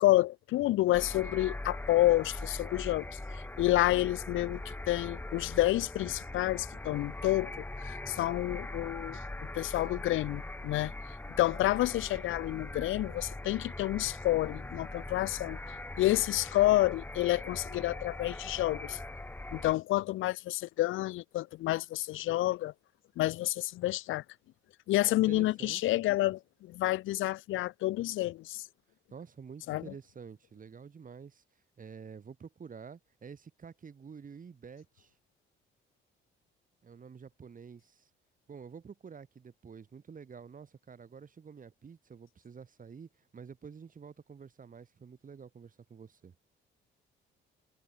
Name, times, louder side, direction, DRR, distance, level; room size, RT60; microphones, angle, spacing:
voice 1, 0.0-9.2 9.5-10.9 11.4-19.0 19.5-22.7 23.2-24.2 24.9-28.6 29.7-29.8, left 16 dB, 85° left, 0.7 m, -29 dB
sound 1, 0.9-19.7, left 2 dB, 10° left, 1.4 m, -41 dB
voice 2, 25.3-26.0 29.1-31.4 31.8-35.1 36.8-38.1 38.5-46.3, right 6 dB, 45° right, 7.2 m, -49 dB
cardioid pair, 90°, 20 cm